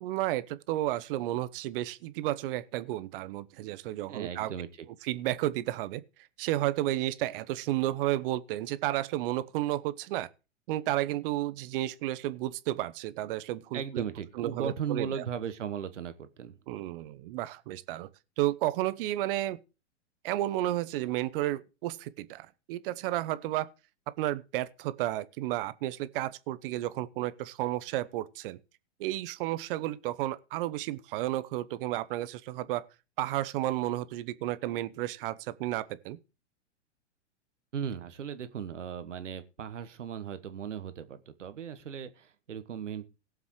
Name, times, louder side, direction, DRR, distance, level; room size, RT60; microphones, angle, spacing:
voice 1, 0.0-4.5 5.0-6.0 6.4-10.3 10.7-14.0 14.4-15.1 16.7-18.1 18.4-19.6 20.2-23.7 24.2-28.6 29.0-32.9 33.2-36.2, right 15 dB, 50° right, 0.9 m, -32 dB
voice 2, 4.1-4.9 13.7-16.6 37.7-43.1, right 8 dB, 75° right, 1.3 m, -37 dB
21.0 x 7.2 x 3.2 m
hypercardioid pair, 105°, 36 cm